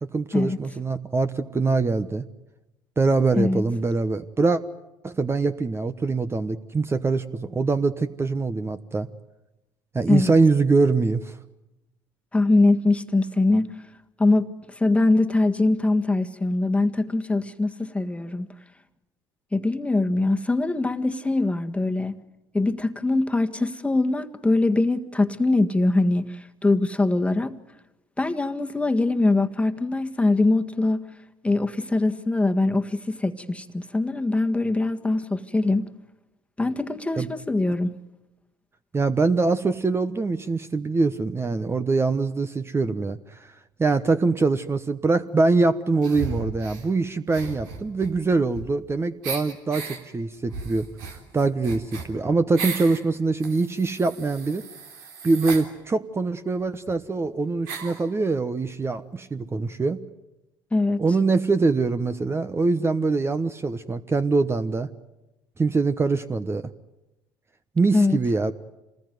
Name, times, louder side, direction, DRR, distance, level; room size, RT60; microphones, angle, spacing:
voice 1, 0.0-2.3 3.0-4.6 5.0-9.1 9.9-11.4 37.2-37.3 38.9-43.5 43.8-50.9 51.3-54.6 55.2-60.0 61.0-64.9 65.6-66.7 67.8-68.5, right 3 dB, 25° right, 1.1 m, -23 dB
voice 2, 12.3-13.7 14.2-18.5 19.5-22.2 22.5-27.6 28.2-31.0 31.4-35.9 36.6-37.9 60.7-61.0 67.9-68.2, left 2 dB, 10° left, 1.7 m, -22 dB
sound 1, 46.0-46.9 47.3-48.9 49.2-50.0 50.5-53.0 53.4-55.7 56.6-56.7 56.9-57.0 57.7-58.0, right 5 dB, 85° right, 3.5 m, -35 dB
26.5 x 20.0 x 9.4 m
supercardioid pair, 75°, 10 cm